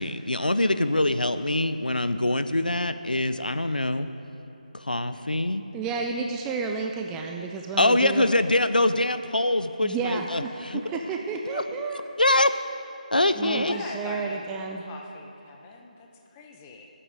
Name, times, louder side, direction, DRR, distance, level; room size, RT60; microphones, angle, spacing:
voice 1, 0.0-4.1 4.7-5.6 7.8-10.8 11.5-11.6 12.2-12.5 13.1-13.7, left 1 dB, 80° left, 11 dB, 0.7 m, -24 dB
voice 2, 5.7-8.3 9.8-12.0 13.4-14.8, right 4 dB, 10° right, 2 dB, 0.3 m, -31 dB
voice 3, 13.4-14.4 14.8-16.8, left 4 dB, 15° left, 2 dB, 0.9 m, -41 dB
20.5 x 8.7 x 5.1 m, 2.9 s
figure-of-eight pair, 155°, 5 cm